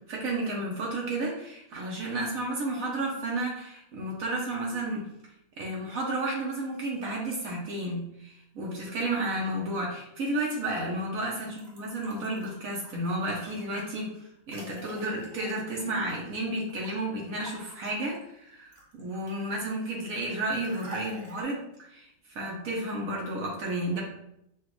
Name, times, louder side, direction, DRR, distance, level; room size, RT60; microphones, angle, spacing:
voice 1, 0.1-5.1 5.6-14.1 14.5-21.6 21.9-24.0, right 1 dB, 75° right, -3 dB, 1.3 m, -32 dB
sound 1, 11.5-17.0 17.4-19.5 20.5-21.4, right 2 dB, 30° right, 1.1 m, -49 dB
6.0 x 2.5 x 3.1 m, 0.78 s
omnidirectional pair, 1.5 m